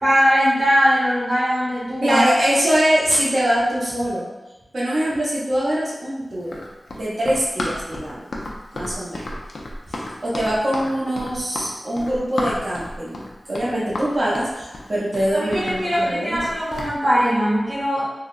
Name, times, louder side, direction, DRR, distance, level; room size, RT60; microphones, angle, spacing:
voice 1, 0.0-2.2 15.3-18.0, equal, 50° right, -13 dB, 1.4 m, -20 dB
voice 2, 2.0-4.3 4.7-6.6 6.9-8.3 8.7-9.4 9.9-16.5, equal, 65° right, -7 dB, 0.9 m, -23 dB
Run, 6.4-16.9, left 1 dB, 90° left, 0.4 m, -32 dB
3.7 x 2.1 x 2.5 m, 1.1 s
wide cardioid pair, 65°, 0 cm